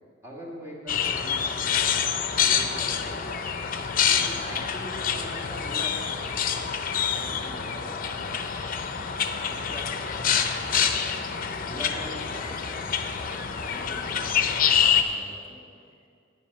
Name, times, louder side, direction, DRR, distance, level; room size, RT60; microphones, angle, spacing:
voice 1, 0.2-1.9 2.4-3.4 4.1-6.1 7.2-8.3 9.5-11.1 11.7-12.4, equal, 15° right, -3 dB, 1.9 m, -42 dB
sound 1, 0.9-15.0, left 7 dB, 50° left, 0.6 m, -26 dB
voice 2, 10.0-10.6 10.9-11.1 11.9-13.2 13.7-15.7, left 1 dB, 25° left, 0 dB, 1.7 m, -48 dB
9.2 x 8.7 x 5.4 m, 2.3 s
head